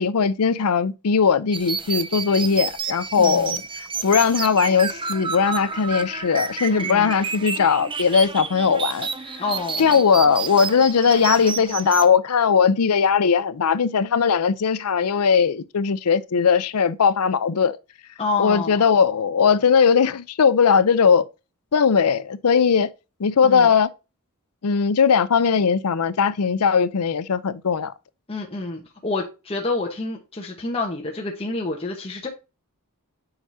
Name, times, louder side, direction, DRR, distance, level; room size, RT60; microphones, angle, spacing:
voice 1, 0.0-3.6 4.0-9.1 9.8-17.8 18.4-21.3 21.7-22.9 23.2-23.9 24.6-27.9, left 6 dB, 85° left, 0.6 m, -19 dB
sound 1, 1.5-12.1, right 5 dB, 20° right, 0.5 m, -30 dB
voice 2, 3.2-3.6 6.7-7.1 9.4-9.9 18.2-18.8 23.4-23.7 28.3-32.3, left 3 dB, 25° left, 1.0 m, -28 dB
8.8 x 4.8 x 2.7 m
head